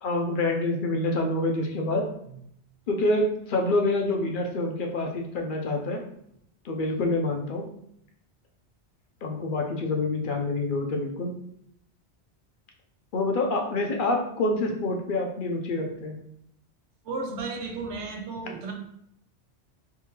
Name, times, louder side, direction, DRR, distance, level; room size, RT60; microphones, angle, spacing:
voice 1, 0.0-2.1 2.9-6.0 6.6-7.7 9.2-11.3 13.1-16.2, left 2 dB, 55° left, 1 dB, 0.7 m, -27 dB
voice 2, 17.0-18.7, right 3 dB, 80° right, 2 dB, 1.0 m, -33 dB
3.6 x 2.7 x 2.9 m, 0.70 s
omnidirectional pair, 1.1 m